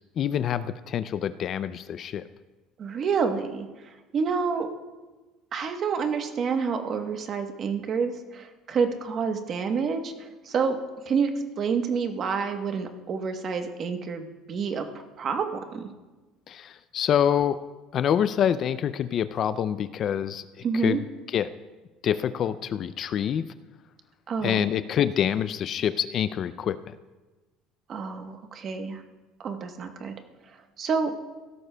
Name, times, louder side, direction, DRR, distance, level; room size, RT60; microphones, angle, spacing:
voice 1, 0.2-2.3 16.5-17.6 17.9-21.0 21.3-21.5 22.0-23.5 24.4-26.9, left 9 dB, 40° left, 14 dB, 0.3 m, -26 dB
voice 2, 2.8-4.7 5.5-10.8 11.1-11.3 11.6-15.9 20.6-21.0 24.3-24.7 27.9-29.0 29.4-30.1 30.8-31.1, right 5 dB, 35° right, 6 dB, 1.0 m, -28 dB
16.5 x 13.0 x 2.2 m, 1.2 s
cardioid pair, 155°, 0 cm